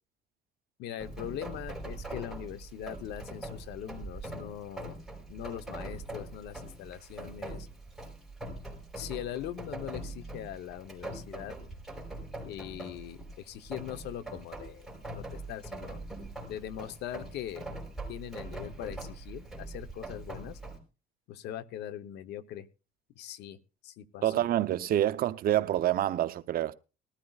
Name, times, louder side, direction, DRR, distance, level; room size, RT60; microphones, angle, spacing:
voice 1, 0.8-5.0 5.3-7.7 9.0-11.5 12.4-14.9 15.1-16.0 16.5-17.6 18.1-20.6 21.3-22.7 23.2-23.6 23.8-24.5, left 11 dB, 80° left, 1.0 m, -41 dB
Rain, 1.0-20.8, right 2 dB, ahead, 4.9 m, -42 dB
voice 2, 24.2-26.7, right 13 dB, 60° right, 0.7 m, -27 dB
20.0 x 13.0 x 2.4 m
cardioid pair, 110°, 17 cm